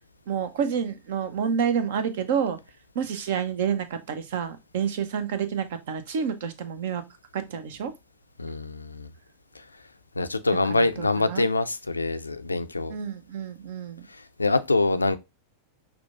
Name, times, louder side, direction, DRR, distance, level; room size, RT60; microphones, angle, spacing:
voice 1, 0.3-2.6 2.9-7.0 7.3-7.9 10.7-11.5 12.9-14.1, right 7 dB, 55° right, 0.7 m, -29 dB
voice 2, 8.4-9.1 10.2-13.0 14.4-15.2, left 3 dB, 80° left, 0.4 m, -25 dB
6.0 x 2.3 x 2.4 m
figure-of-eight pair, 90°, 0 cm